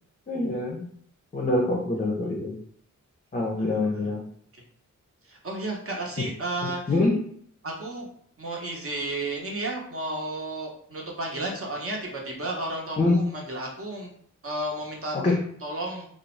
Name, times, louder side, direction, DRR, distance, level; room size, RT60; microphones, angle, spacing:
voice 1, 0.3-0.9 1.3-2.6 3.3-4.2 6.2-6.3 6.9-7.2 13.0-13.2 15.1-15.4, left 2 dB, 25° left, -1 dB, 0.5 m, -25 dB
voice 2, 3.6-4.1 5.2-6.9 7.6-8.1 8.4-14.1 14.4-15.2 15.6-16.1, right 2 dB, 45° right, -1 dB, 0.8 m, -33 dB
2.6 x 2.0 x 3.1 m, 0.62 s
cardioid pair, 65°, 31 cm